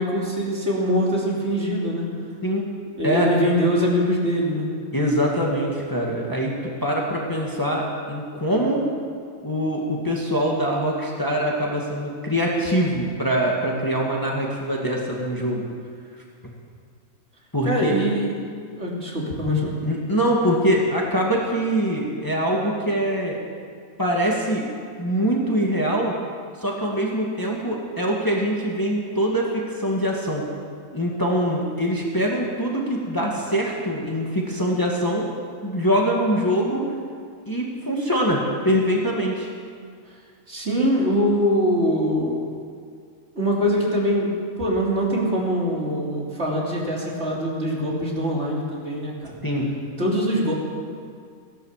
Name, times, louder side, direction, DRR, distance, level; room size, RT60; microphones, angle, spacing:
voice 1, 0.0-2.1 3.0-4.7 17.6-18.3 18.8-19.7 40.5-42.4 43.4-49.4 50.0-50.5, equal, 50° right, -4 dB, 3.4 m, -23 dB
voice 2, 4.9-6.5 6.8-8.8 9.4-15.6 17.5-17.9 19.8-23.4 24.0-24.6 25.0-26.1 26.6-30.5 30.9-35.3 35.6-36.9 37.5-39.5 49.4-49.8, equal, 15° left, -2 dB, 2.0 m, -23 dB
16.5 x 11.5 x 7.4 m, 2.2 s
omnidirectional pair, 1.5 m